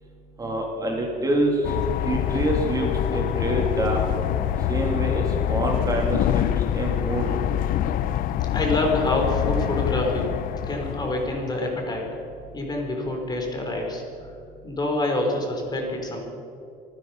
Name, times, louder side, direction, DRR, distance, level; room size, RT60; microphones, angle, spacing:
voice 1, 0.4-1.5 2.0-4.0 4.7-6.4 6.7-7.3, right 1 dB, 20° right, 0 dB, 2.7 m, -26 dB
sound 1, 1.6-11.9, left 11 dB, 60° left, 0.6 m, -25 dB
voice 2, 8.5-10.3 10.7-12.1 12.5-14.3 14.6-16.2, left 2 dB, 25° left, 1 dB, 3.5 m, -26 dB
26.0 x 10.0 x 5.4 m, 2.6 s
cardioid pair, 120°, 16 cm